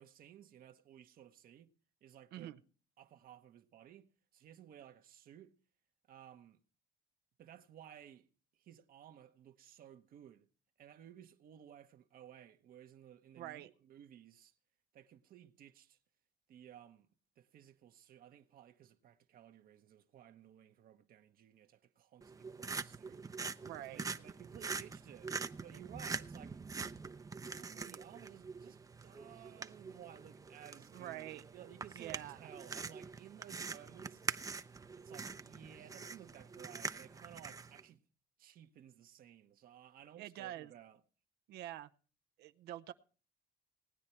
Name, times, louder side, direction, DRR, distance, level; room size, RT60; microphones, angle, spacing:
voice 1, 0.0-1.7 2.0-2.6 3.0-5.5 6.1-6.6 7.4-8.3 8.5-10.5 10.8-14.5 14.9-16.0 16.5-17.1 17.4-23.6 23.9-26.6 27.5-34.2 35.0-38.0 38.4-41.0, right 10 dB, 60° right, 1.0 m, -57 dB
voice 2, 13.4-13.7 23.6-24.1 30.9-31.4 31.9-32.5 40.2-40.7 41.5-41.9 42.4-42.9, right 13 dB, 75° right, 0.7 m, -46 dB
sound 1, 22.2-37.8, right 4 dB, 20° right, 0.6 m, -44 dB
18.0 x 9.6 x 4.4 m
cardioid pair, 110°, 17 cm